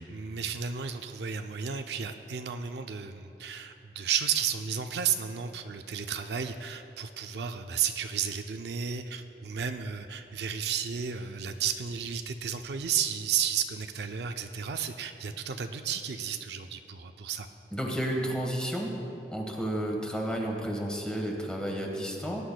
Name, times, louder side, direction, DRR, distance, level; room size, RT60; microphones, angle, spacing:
voice 1, 0.0-17.5, right 7 dB, 65° right, 7 dB, 0.4 m, -33 dB
voice 2, 17.7-18.9 19.3-22.4, equal, 5° left, 0 dB, 1.2 m, -31 dB
19.0 x 9.6 x 2.2 m, 2.8 s
head